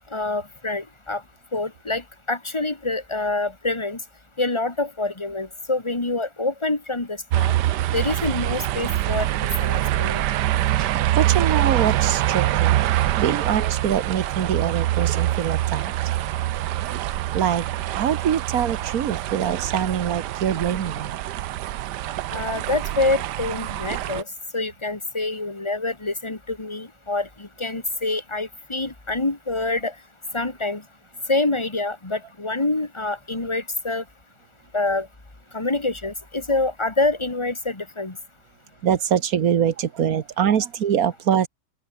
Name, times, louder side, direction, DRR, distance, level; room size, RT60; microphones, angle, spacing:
voice 1, 0.1-1.2 1.5-4.0 4.4-7.5 7.9-10.2 22.3-24.3 24.5-29.9 30.3-30.8 31.3-34.0 34.7-35.1 35.5-38.2, left 2 dB, 15° left, 2.2 m, -26 dB
sound 1, 7.3-24.2, right 14 dB, 85° right, 1.3 m, -24 dB
voice 2, 10.8-15.9 17.3-17.6 17.9-21.2 38.8-41.5, right 8 dB, 60° right, 1.6 m, -24 dB
open air
omnidirectional pair, 1.8 m